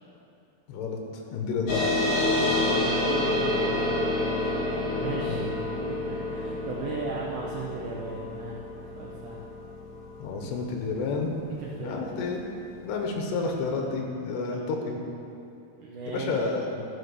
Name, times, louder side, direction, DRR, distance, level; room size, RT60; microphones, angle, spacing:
voice 1, 0.7-1.0 1.3-2.0 5.1-5.5 10.2-11.3 11.8-12.4 12.8-14.6 14.9-15.0 16.1-16.9, left 4 dB, 85° left, 2 dB, 3.2 m, -30 dB
sound 1, 1.7-12.6, left 1 dB, 60° left, 2.6 m, -29 dB
voice 2, 2.2-5.4 6.1-8.6 8.9-9.4 10.3-10.5 11.6-12.1 14.5-14.7 15.8-16.5, right 4 dB, 85° right, -2 dB, 1.7 m, -37 dB
13.5 x 5.4 x 6.6 m, 2.7 s
omnidirectional pair, 4.8 m